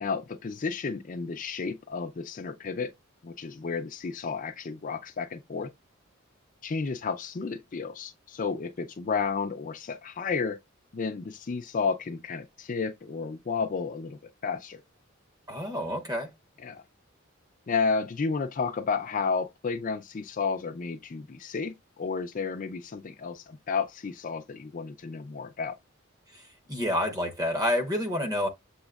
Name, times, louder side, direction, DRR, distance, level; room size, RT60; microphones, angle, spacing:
voice 1, 0.0-2.9 3.2-5.7 6.6-10.6 10.9-14.8 16.6-16.8 17.7-25.8, left 5 dB, 40° left, 0.4 m, -32 dB
voice 2, 15.5-16.3 26.3-26.4 26.7-28.5, left 1 dB, 20° right, 0.9 m, -28 dB
7.1 x 2.9 x 2.3 m
head